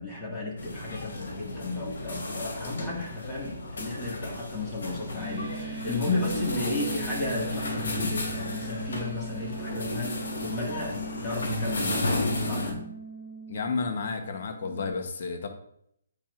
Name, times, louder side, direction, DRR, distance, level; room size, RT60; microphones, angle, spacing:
voice 1, 0.0-12.9, left 2 dB, 10° left, -6 dB, 1.8 m, -34 dB
sound 1, 0.6-12.7, left 2 dB, 75° left, 2.3 m, -33 dB
sound 2, 5.2-14.9, right 4 dB, 15° right, 2.1 m, -40 dB
voice 2, 13.5-15.5, left 4 dB, 55° left, 5 dB, 0.9 m, -31 dB
8.8 x 4.3 x 2.5 m, 0.71 s
hypercardioid pair, 165°, 0 cm